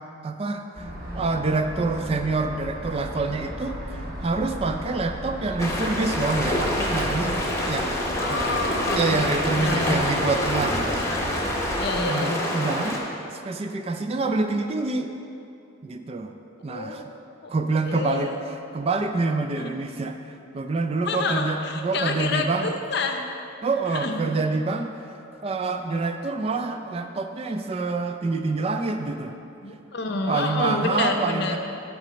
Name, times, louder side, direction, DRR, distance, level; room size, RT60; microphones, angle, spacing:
voice 1, 0.2-0.8 1.1-8.6 8.9-10.8 12.1-13.0 13.4-15.1 15.8-16.3 16.6-17.0 17.5-18.3 18.7-20.2 20.5-22.7 23.6-24.9 25.4-29.3 30.3-31.6, right 3 dB, 30° right, 6 dB, 0.3 m, -26 dB
sound 1, 0.7-11.9, equal, 45° right, 1.3 m, -35 dB
sound 2, 5.6-13.0, left 1 dB, 15° left, 0.8 m, -27 dB
voice 2, 8.2-9.2 9.6-10.0 11.1-11.2 11.8-12.4 16.7-17.0 17.4-17.5 17.9-18.3 19.6-19.7 21.1-23.2 23.9-24.2 29.6-31.6, left 3 dB, 55° left, 4 dB, 0.6 m, -28 dB
6.0 x 5.1 x 6.7 m, 2.6 s
head